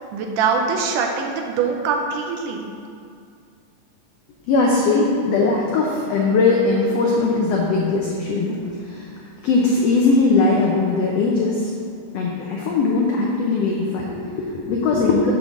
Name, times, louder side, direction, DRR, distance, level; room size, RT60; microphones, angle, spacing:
voice 1, 0.0-2.7, right 5 dB, 85° right, 2 dB, 2.1 m, -23 dB
voice 2, 4.5-9.1 9.4-11.7 12.1-15.3, left 3 dB, 90° left, -2 dB, 1.4 m, -20 dB
7.2 x 3.9 x 6.0 m, 2.3 s
omnidirectional pair, 3.7 m